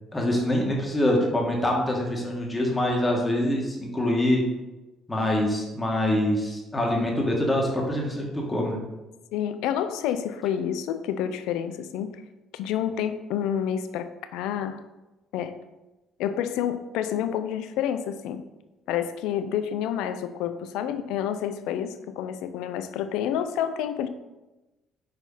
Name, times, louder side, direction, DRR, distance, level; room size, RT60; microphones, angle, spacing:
voice 1, 0.1-4.5 5.1-8.8, left 1 dB, 20° left, -1 dB, 1.9 m, -25 dB
voice 2, 9.3-12.2 12.5-14.8 15.3-15.5 16.2-18.4 18.9-24.1, left 9 dB, 75° left, 10 dB, 0.5 m, -29 dB
6.0 x 4.9 x 4.0 m, 1.1 s
hypercardioid pair, 55°, 0 cm